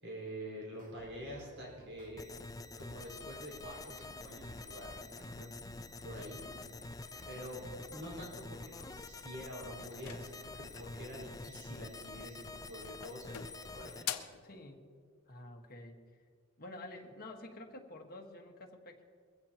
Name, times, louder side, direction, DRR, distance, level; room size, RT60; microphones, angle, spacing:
voice 1, 0.0-2.4 2.8-5.5 6.0-6.4 7.3-14.2, equal, 55° right, -2 dB, 4.7 m, -47 dB
sound 1, 0.7-2.2 2.6-7.7, right 1 dB, 40° right, 1.3 m, -59 dB
sound 2, 2.2-14.0, left 3 dB, 15° left, 0.4 m, -47 dB
voice 2, 6.2-6.8 14.4-14.9 15.3-16.0 16.6-19.0, left 1 dB, 45° left, 2 dB, 1.5 m, -50 dB
sound 3, 9.8-11.0 12.3-12.7 13.0-14.5, left 10 dB, 80° left, 0.9 m, -44 dB
22.0 x 16.0 x 2.9 m, 2.1 s
head